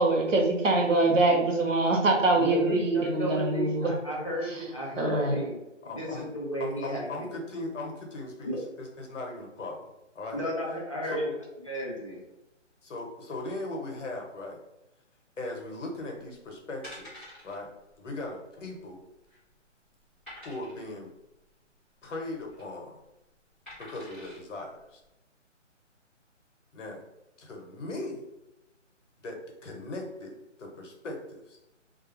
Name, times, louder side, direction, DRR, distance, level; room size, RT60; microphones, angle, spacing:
voice 1, 0.0-3.9 4.5-4.6 5.0-5.4, right 2 dB, 90° right, 2 dB, 0.9 m, -24 dB
voice 2, 2.4-5.6 5.8-7.1 8.4-8.6 10.3-11.3 11.6-12.2, equal, 25° left, -5 dB, 0.5 m, -33 dB
voice 3, 5.8-6.3 6.6-9.8 10.1-10.4 11.0-11.2 12.8-14.6 15.4-17.7 18.0-19.0 20.4-21.1 22.0-23.0 23.8-25.0 26.7-27.0 27.4-28.2 29.2-30.3 30.6-31.6, left 2 dB, 75° left, 0 dB, 1.0 m, -38 dB
sound 1, 16.8-17.6 17.9-18.1 18.3-18.4 19.0-19.5 20.3-20.9 22.3-22.6 23.7-24.4 25.0-25.1, left 1 dB, 10° right, 0.7 m, -47 dB
2.5 x 2.2 x 3.0 m, 0.93 s
hypercardioid pair, 170°, 37 cm